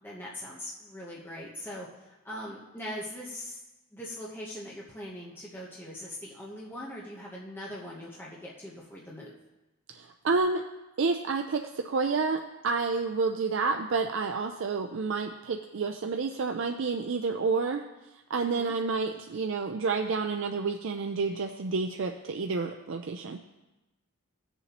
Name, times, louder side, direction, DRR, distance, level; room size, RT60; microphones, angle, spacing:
voice 1, 0.0-3.6 3.9-9.4 18.4-18.7, left 1 dB, 10° left, -5 dB, 0.9 m, -41 dB
voice 2, 9.9-10.7 11.0-17.8 18.3-23.4, right 4 dB, 55° right, 4 dB, 0.4 m, -29 dB
16.5 x 6.9 x 2.9 m, 1.0 s
head